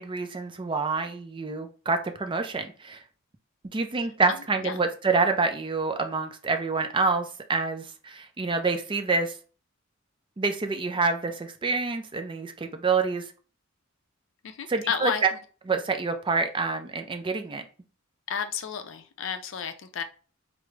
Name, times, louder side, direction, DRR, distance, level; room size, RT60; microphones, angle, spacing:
voice 1, 0.0-3.0 3.7-9.4 10.4-13.3 14.7-15.3 15.7-17.6, right 4 dB, 25° right, 6 dB, 0.4 m, -27 dB
voice 2, 14.4-15.2 18.3-20.0, left 7 dB, 60° left, 8 dB, 0.4 m, -31 dB
4.6 x 2.0 x 3.1 m, 0.38 s
head